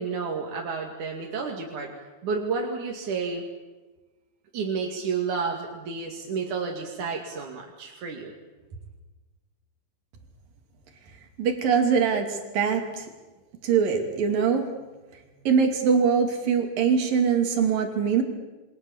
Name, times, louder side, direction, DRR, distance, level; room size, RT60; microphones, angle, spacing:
voice 1, 0.0-1.9 2.2-3.4 4.5-8.3, right 5 dB, 65° right, 0 dB, 3.7 m, -31 dB
voice 2, 11.4-13.1 13.6-14.7 15.5-18.2, right 6 dB, 85° right, 5 dB, 4.5 m, -23 dB
28.0 x 25.0 x 7.2 m, 1.2 s
omnidirectional pair, 3.9 m